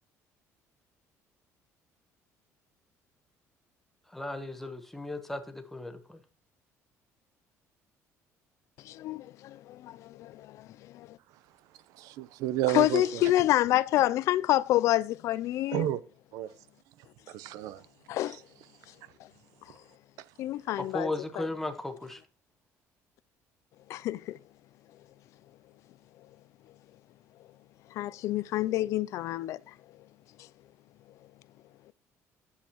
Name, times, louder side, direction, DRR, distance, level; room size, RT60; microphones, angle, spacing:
voice 1, 4.1-6.2 20.8-22.2, left 2 dB, 5° left, 1.1 m, -36 dB
voice 2, 8.8-11.2 12.7-15.9 18.1-18.4 20.4-21.5 23.9-24.4 27.9-29.7, left 14 dB, 60° left, 0.4 m, -28 dB
voice 3, 11.9-13.4 15.7-16.0 16.3-16.5 17.3-17.8 18.3-18.4, right 14 dB, 85° right, 0.7 m, -31 dB
10.0 x 7.4 x 3.0 m
cardioid pair, 175°, 6 cm